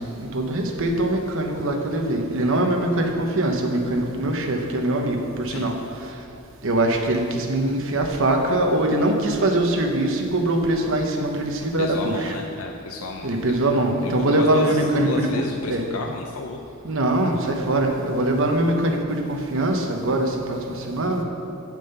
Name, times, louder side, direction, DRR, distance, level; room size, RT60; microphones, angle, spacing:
voice 1, 0.0-5.7 6.0-6.2 6.6-12.3 13.2-15.3 15.7-15.8 16.8-21.2, right 1 dB, 65° right, 2 dB, 1.0 m, -22 dB
voice 2, 11.8-13.4 14.0-16.6, left 3 dB, 75° left, 2 dB, 0.6 m, -32 dB
7.8 x 7.2 x 5.6 m, 2.7 s
head